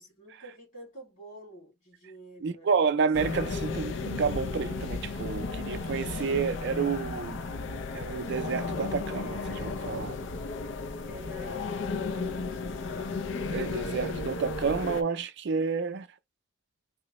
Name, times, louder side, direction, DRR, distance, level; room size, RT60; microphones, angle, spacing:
voice 1, 0.0-2.9 5.6-5.8 11.1-11.7 12.1-13.1, right 1 dB, 40° left, 2.3 m, -49 dB
voice 2, 2.4-7.4 7.9-10.2 13.5-16.1, right 5 dB, 60° right, 0.4 m, -30 dB
sound 1, 3.1-15.0, left 3 dB, 65° left, 0.5 m, -34 dB
3.6 x 2.1 x 3.0 m
head